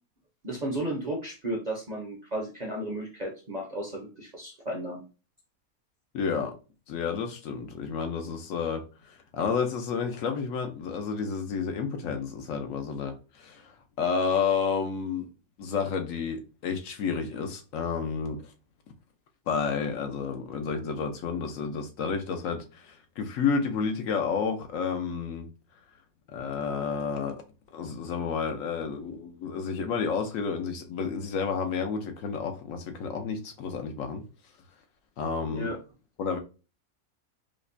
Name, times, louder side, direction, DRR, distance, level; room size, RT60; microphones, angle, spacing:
voice 1, 0.4-5.0 35.5-35.8, right 1 dB, 40° right, 0.6 m, -34 dB
voice 2, 6.1-6.5 6.9-13.7 14.0-15.3 15.6-18.5 19.5-25.5 26.3-27.4 27.7-34.2 35.2-35.7 36.2-36.4, left 5 dB, 70° left, 1.0 m, -30 dB
5.0 x 2.1 x 2.5 m
omnidirectional pair, 1.5 m